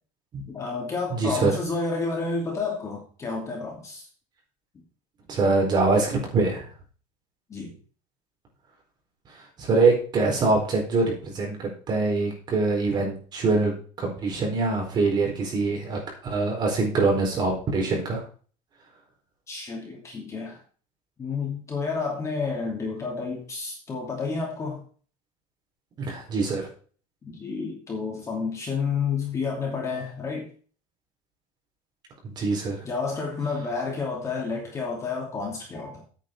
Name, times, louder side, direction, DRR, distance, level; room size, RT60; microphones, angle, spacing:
voice 1, 0.5-4.1 7.5-7.7 19.5-20.6 21.2-24.8 27.2-30.5 32.8-36.0, left 4 dB, 20° left, -1 dB, 2.7 m, -30 dB
voice 2, 1.1-1.5 5.3-6.7 9.6-13.7 14.0-16.0 16.3-18.2 26.0-26.6 32.2-32.8, right 3 dB, 30° right, 0 dB, 4.4 m, -24 dB
9.2 x 9.1 x 4.5 m, 0.41 s
cardioid pair, 180°, 15 cm